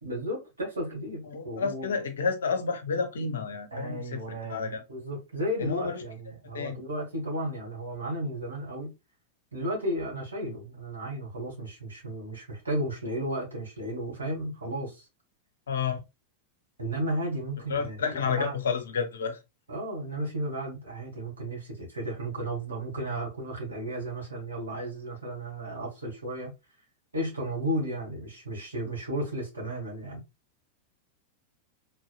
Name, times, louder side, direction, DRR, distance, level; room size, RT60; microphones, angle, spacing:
voice 1, 0.0-1.9 3.7-8.9 9.5-15.1 16.8-18.0 18.2-18.6 19.7-26.5 27.1-30.2, right 1 dB, 75° right, 1.6 m, -34 dB
voice 2, 1.3-4.8 5.6-6.0 6.5-6.8 15.7-16.0 17.7-19.4, left 5 dB, 65° left, 0.6 m, -30 dB
3.2 x 2.7 x 2.3 m
figure-of-eight pair, 90°, 0 cm